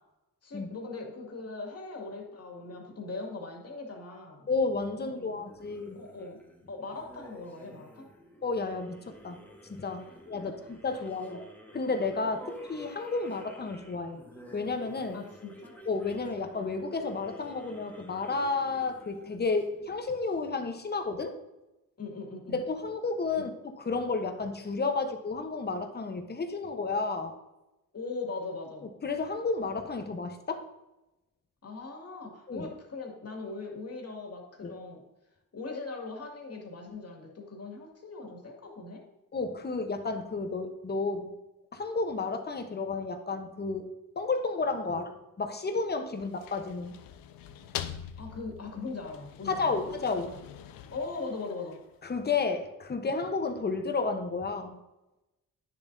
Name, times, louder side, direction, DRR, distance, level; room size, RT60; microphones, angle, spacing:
voice 1, 0.4-4.5 5.0-5.4 5.9-6.4 6.7-8.1 10.4-10.5 11.3-11.4 15.1-15.8 22.0-22.6 23.3-23.5 27.9-28.9 31.6-35.0 35.5-39.0 44.9-45.0 48.2-49.8 50.9-51.8, left 3 dB, 45° left, 0 dB, 2.3 m, -40 dB
voice 2, 4.5-6.0 8.4-9.4 9.7-11.4 11.7-14.2 14.5-15.2 15.8-21.3 22.5-27.3 28.8-30.6 32.5-32.7 34.6-34.7 39.3-41.3 41.7-43.9 44.2-45.1 45.4-47.0 49.5-50.3 52.0-54.8, left 4 dB, 30° left, 6 dB, 1.0 m, -32 dB
sound 1, 5.4-20.3, equal, 5° left, 1.4 m, -50 dB
sound 2, 46.1-52.1, left 10 dB, 85° left, 0.6 m, -44 dB
9.6 x 7.2 x 2.7 m, 0.98 s
cardioid pair, 75°, 34 cm